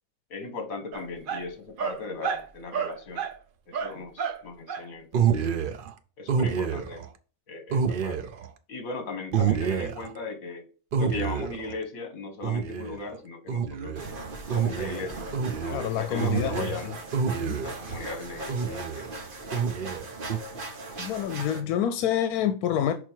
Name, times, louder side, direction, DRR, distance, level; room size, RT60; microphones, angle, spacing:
voice 1, 0.3-3.2 3.7-5.5 6.2-7.0 7.5-8.2 8.7-10.6 11.0-14.0 14.5-15.3 15.6-16.9 17.6-19.2, left 3 dB, 65° left, 1.7 m, -38 dB
sound 1, 0.9-1.4 1.8-2.4 2.7-3.4 3.7-4.4 4.7-4.8 5.1-5.9 6.3-7.1 7.7-8.5 9.3-10.1 10.9-11.7 12.4-13.0 13.5-14.1 14.5-17.9 18.5-19.1 19.5-20.4, right 7 dB, 55° right, 0.6 m, -28 dB
sound 2, 14.0-21.6, right 2 dB, 40° right, 1.2 m, -39 dB
voice 2, 15.7-16.9 17.3-17.6 21.0-22.9, left 10 dB, 85° left, 1.1 m, -28 dB
6.0 x 4.5 x 4.5 m
omnidirectional pair, 1.6 m